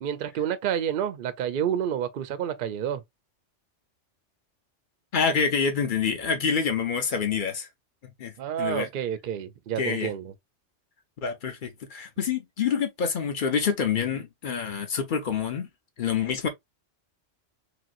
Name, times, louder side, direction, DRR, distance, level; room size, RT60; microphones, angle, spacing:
voice 1, 0.0-3.0 8.4-10.3, right 9 dB, 60° right, 0.6 m, -29 dB
voice 2, 5.1-7.7 8.2-8.3 8.6-8.9 9.8-10.1 11.2-15.7 16.0-16.5, left 6 dB, 50° left, 0.8 m, -27 dB
3.1 x 2.9 x 2.4 m
omnidirectional pair, 1.2 m